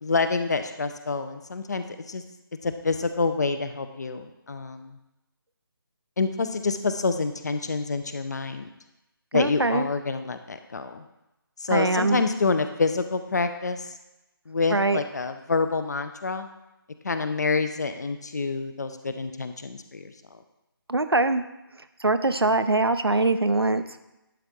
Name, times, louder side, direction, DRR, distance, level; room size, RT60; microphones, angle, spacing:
voice 1, 0.0-2.2 2.6-5.0 6.2-8.7 9.3-11.0 11.6-13.9 14.5-16.5 17.0-20.1, left 4 dB, 45° left, 9 dB, 0.6 m, -27 dB
voice 2, 9.3-9.9 11.7-12.2 14.7-15.0 20.9-21.4 22.0-24.0, right 2 dB, 85° right, 10 dB, 0.6 m, -23 dB
11.0 x 4.4 x 3.8 m, 0.95 s
figure-of-eight pair, 155°, 13 cm